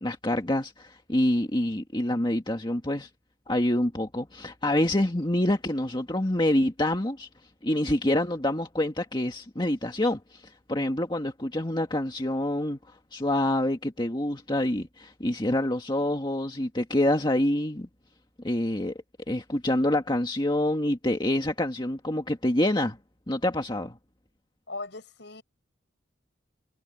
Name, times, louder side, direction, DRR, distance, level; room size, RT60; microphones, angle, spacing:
voice 1, 0.0-3.1 3.5-7.3 7.6-17.9 18.4-18.9 19.3-23.0 23.3-24.0, left 1 dB, 25° left, 1.8 m, -26 dB
voice 2, 24.7-25.4, left 3 dB, 65° left, 7.7 m, -38 dB
head